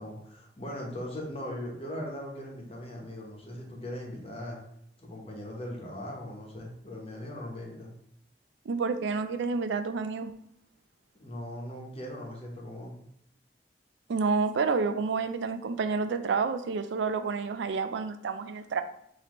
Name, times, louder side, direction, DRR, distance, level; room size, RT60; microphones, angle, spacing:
voice 1, 0.0-4.6 5.0-7.9 11.2-13.0, left 1 dB, 35° left, -2 dB, 1.0 m, -39 dB
voice 2, 8.7-10.3 14.1-18.8, right 4 dB, 85° right, 10 dB, 0.4 m, -29 dB
5.9 x 2.8 x 3.0 m, 0.73 s
head